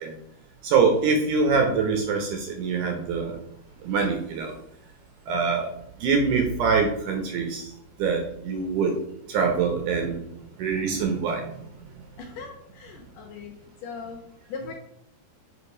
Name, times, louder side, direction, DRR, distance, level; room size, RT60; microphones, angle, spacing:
voice 1, 0.6-3.4 3.8-4.5 5.3-5.7 6.0-7.7 8.0-9.0 9.3-10.2 10.6-11.6, right 5 dB, 70° right, 2 dB, 2.1 m, -24 dB
voice 2, 12.2-14.2 14.5-14.7, left 5 dB, 75° left, 3 dB, 2.1 m, -39 dB
5.2 x 5.1 x 4.9 m, 0.76 s
omnidirectional pair, 4.5 m